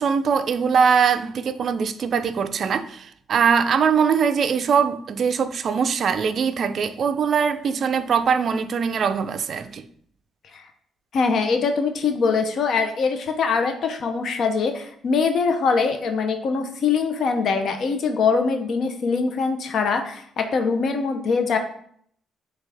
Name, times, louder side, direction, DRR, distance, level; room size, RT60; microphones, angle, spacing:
voice 1, 0.0-9.8, right 6 dB, 55° right, 0.3 m, -22 dB
voice 2, 11.1-21.6, left 5 dB, 65° left, 0.5 m, -23 dB
6.0 x 2.3 x 3.3 m
cardioid pair, 90°, 0 cm